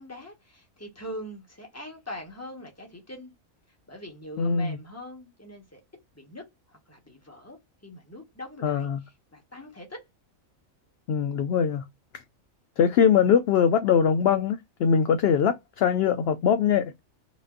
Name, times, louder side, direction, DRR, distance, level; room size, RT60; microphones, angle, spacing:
voice 1, 0.0-3.3 3.9-5.8 6.1-7.6 7.8-10.0, left 1 dB, 10° left, 1.4 m, -42 dB
voice 2, 4.4-4.8 8.6-9.0 11.1-11.8 12.8-16.9, left 7 dB, 65° left, 0.6 m, -22 dB
5.1 x 2.5 x 2.5 m
omnidirectional pair, 1.4 m